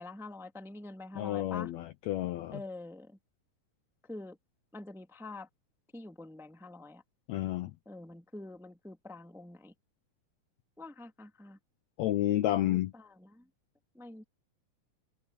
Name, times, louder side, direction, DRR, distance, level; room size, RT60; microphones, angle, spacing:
voice 1, 0.0-1.7 2.5-3.2 4.1-4.4 4.7-5.5 5.9-7.0 7.8-9.7 10.8-11.6 12.6-13.4 13.9-14.2, left 2 dB, ahead, 0.8 m, -46 dB
voice 2, 1.2-2.6 7.3-7.7 12.0-12.9, left 14 dB, 80° left, 1.6 m, -30 dB
omnidirectional pair, 3.9 m